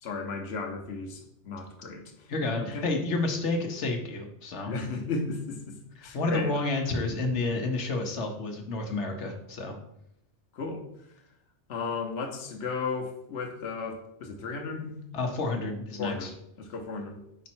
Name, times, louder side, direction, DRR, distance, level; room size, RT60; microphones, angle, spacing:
voice 1, 0.0-2.0 2.6-2.9 4.6-5.7 6.0-6.5 10.5-10.8 11.7-15.0 16.0-16.3 16.6-17.2, left 4 dB, 65° left, 3 dB, 1.1 m, -34 dB
voice 2, 2.3-4.7 6.1-9.7 15.1-16.3, left 2 dB, 85° left, 3 dB, 1.2 m, -30 dB
5.5 x 4.2 x 4.4 m, 0.79 s
omnidirectional pair, 1.2 m